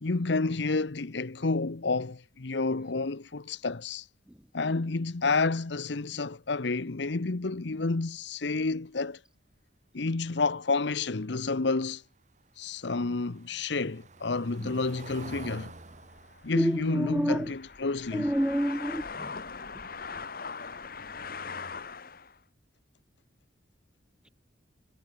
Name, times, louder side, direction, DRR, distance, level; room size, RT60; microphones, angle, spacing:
voice 1, 0.0-4.1 4.5-9.2 9.9-12.0 12.6-15.7 16.4-18.3, left 3 dB, 65° left, 0.9 m, -30 dB
Car passing by / Engine, 11.9-18.8 19.2-19.4 19.7-19.8, right 3 dB, 40° right, 1.5 m, -50 dB
sound 1, 15.2-22.4, left 5 dB, 50° left, 1.3 m, -41 dB
voice 2, 16.6-17.5 18.1-19.3, equal, 5° right, 0.5 m, -28 dB
head